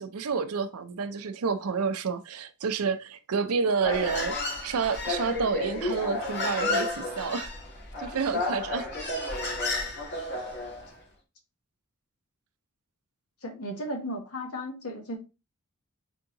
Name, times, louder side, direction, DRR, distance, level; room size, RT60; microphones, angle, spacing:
voice 1, 0.0-4.4 4.6-7.5 8.0-8.9, right 5 dB, 80° right, 0.5 m, -29 dB
Human voice, 3.8-10.9, left 2 dB, 50° left, 1.4 m, -31 dB
voice 2, 13.4-15.2, equal, 80° left, 1.2 m, -35 dB
3.6 x 3.5 x 2.9 m
head